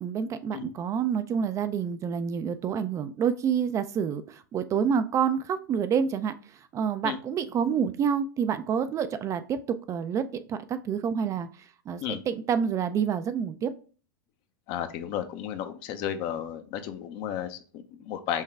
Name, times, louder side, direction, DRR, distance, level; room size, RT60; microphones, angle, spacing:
voice 1, 0.0-9.6 9.9-13.7, right 7 dB, 30° right, 11 dB, 0.3 m, -28 dB
voice 2, 14.7-18.4, left 10 dB, 50° left, 10 dB, 0.6 m, -33 dB
5.6 x 2.3 x 3.4 m, 0.38 s
hypercardioid pair, 105°, 11 cm